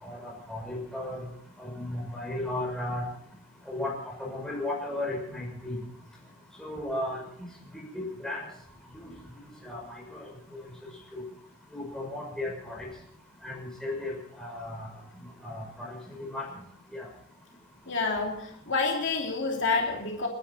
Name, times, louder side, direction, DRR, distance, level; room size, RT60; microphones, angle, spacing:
voice 1, 0.0-1.2 1.6-3.0 3.7-5.8 6.6-7.2 7.7-8.4 9.4-10.3 11.1-11.2 11.7-12.9 13.4-14.9 15.4-16.0 16.3-16.5 16.9-17.1, left 1 dB, ahead, -2 dB, 6.0 m, -35 dB
voice 2, 17.9-20.3, left 4 dB, 55° left, 0 dB, 2.9 m, -28 dB
30.0 x 11.0 x 4.3 m, 0.69 s
head